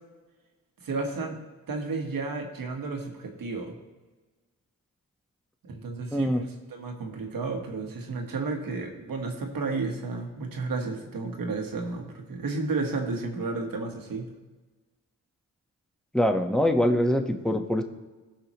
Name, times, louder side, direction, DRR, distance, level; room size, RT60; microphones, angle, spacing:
voice 1, 0.8-1.4 1.7-3.8 5.6-14.3, right 3 dB, 80° right, 3 dB, 1.4 m, -32 dB
voice 2, 6.1-6.4 16.1-17.8, left 1 dB, ahead, 4 dB, 1.1 m, -23 dB
16.0 x 5.7 x 3.0 m, 1.3 s
cardioid pair, 50°, 34 cm